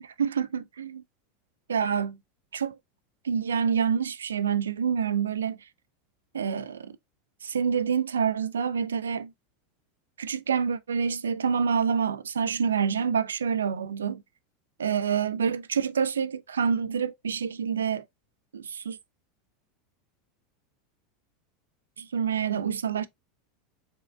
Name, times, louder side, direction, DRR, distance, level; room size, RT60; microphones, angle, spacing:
voice 1, 0.0-1.0 1.7-2.2 2.5-2.8 3.2-5.6 6.3-6.9 7.4-9.3 10.2-14.2 14.8-18.0 18.5-19.0 22.0-23.1, right 7 dB, 75° right, 0.4 m, -27 dB
5.2 x 3.4 x 2.3 m
figure-of-eight pair, 80°, 0 cm